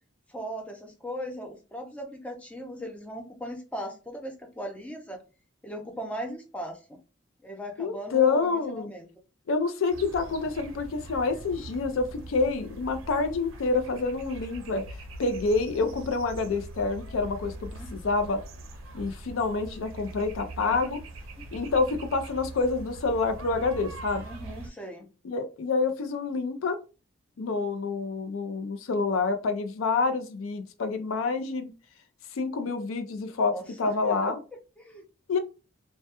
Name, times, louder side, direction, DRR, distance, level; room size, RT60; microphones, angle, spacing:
voice 1, 0.3-5.2 5.6-6.8 7.4-9.1 17.7-17.9 20.6-20.9 21.4-21.5 24.2-25.1 33.5-34.3 34.8-35.0, equal, 5° left, 3 dB, 0.4 m, -38 dB
voice 2, 7.8-8.9 9.5-14.8 15.2-17.5 17.9-18.4 18.9-21.0 21.5-24.2 25.2-26.8 27.4-31.7 32.3-34.4 35.3-35.4, left 4 dB, 85° left, 8 dB, 0.4 m, -27 dB
sound 1, 9.9-24.7, right 2 dB, 85° right, 0.5 m, -42 dB
2.2 x 2.2 x 2.8 m, 0.32 s
head